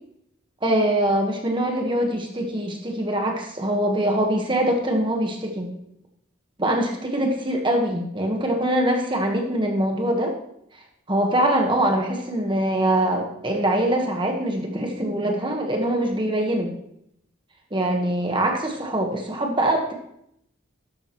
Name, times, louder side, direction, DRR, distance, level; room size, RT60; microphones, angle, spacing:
voice 1, 0.6-5.7 6.6-10.3 11.1-16.7 17.7-19.9, right 1 dB, 25° right, 2 dB, 1.4 m, -23 dB
13.0 x 12.0 x 3.1 m, 0.76 s
head